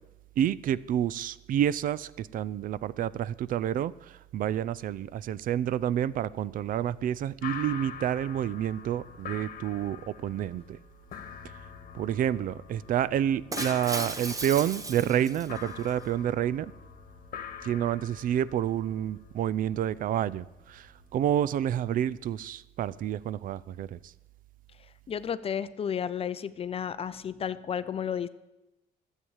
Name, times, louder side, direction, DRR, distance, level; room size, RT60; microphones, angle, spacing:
voice 1, 0.4-10.8 11.9-16.7 17.6-24.0, right 10 dB, 55° right, 20 dB, 0.5 m, -29 dB
sound 1, 7.4-21.9, left 8 dB, 55° left, 1.3 m, -45 dB
Shatter, 13.5-15.9, right 3 dB, 20° right, 0.9 m, -36 dB
voice 2, 25.1-28.3, left 8 dB, 35° left, 14 dB, 0.5 m, -32 dB
12.5 x 8.3 x 7.2 m, 1.0 s
cardioid pair, 110°, 17 cm